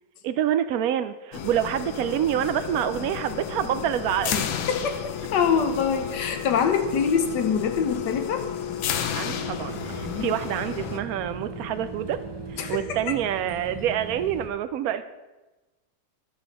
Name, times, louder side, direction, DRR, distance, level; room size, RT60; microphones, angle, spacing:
voice 1, 0.2-4.4 9.1-12.2 12.5-15.0, right 10 dB, 80° right, 10 dB, 0.8 m, -27 dB
sound 1, 1.3-11.0, left 8 dB, 90° left, 1.6 m, -32 dB
voice 2, 4.7-8.5 10.0-10.4 12.6-13.1, left 6 dB, 65° left, 7 dB, 1.5 m, -25 dB
sound 2, 9.2-14.5, right 3 dB, 30° right, 0.4 m, -38 dB
11.5 x 6.3 x 5.4 m, 1.1 s
omnidirectional pair, 2.1 m